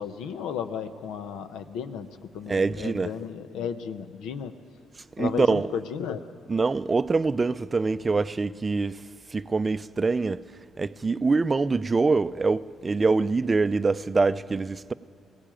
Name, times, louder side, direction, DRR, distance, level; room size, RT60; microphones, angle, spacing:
voice 1, 0.0-2.1 2.3-4.5 5.2-6.2, left 7 dB, 90° left, 0.9 m, -34 dB
voice 2, 2.5-3.1 5.2-5.7 6.5-9.0 9.3-10.4 10.8-14.9, right 4 dB, 30° right, 0.4 m, -24 dB
17.0 x 17.0 x 9.0 m
cardioid pair, 90°, 0 cm